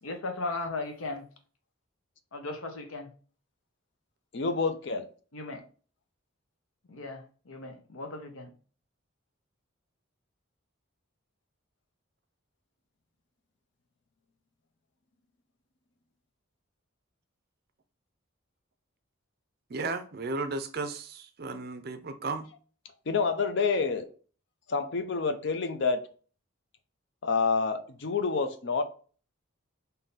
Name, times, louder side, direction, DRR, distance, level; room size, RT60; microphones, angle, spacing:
voice 1, 0.0-1.2 2.3-3.1 5.3-5.6 6.9-8.5, left 2 dB, 75° left, 0.8 m, -37 dB
voice 2, 4.3-5.1 23.1-24.1 24.7-26.0 27.2-28.8, left 4 dB, 55° left, 0.5 m, -28 dB
voice 3, 19.7-22.5, right 3 dB, 45° right, 0.5 m, -34 dB
3.8 x 2.7 x 3.9 m
head